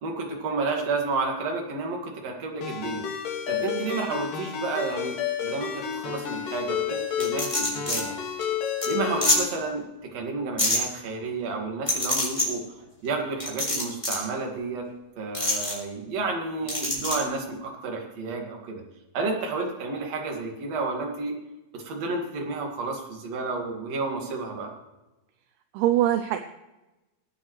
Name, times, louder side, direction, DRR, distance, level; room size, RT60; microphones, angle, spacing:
voice 1, 0.0-3.0 3.5-8.1 8.9-12.6 13.0-14.9 15.2-18.8 19.1-21.3 21.7-24.7, right 3 dB, 45° right, 1 dB, 2.6 m, -31 dB
Ringtone, 2.6-9.5, left 8 dB, 60° left, 3.3 m, -30 dB
sound 1, 7.2-8.0 8.4-8.5 8.8-8.9 9.2-9.4 10.6-10.8 11.9-12.5 13.4-14.2 15.3-15.7 16.7-17.2, left 1 dB, 5° left, 3.7 m, -25 dB
voice 2, 25.7-26.4, right 12 dB, 80° right, 8 dB, 2.3 m, -25 dB
22.5 x 9.4 x 3.2 m, 1.0 s
omnidirectional pair, 4.9 m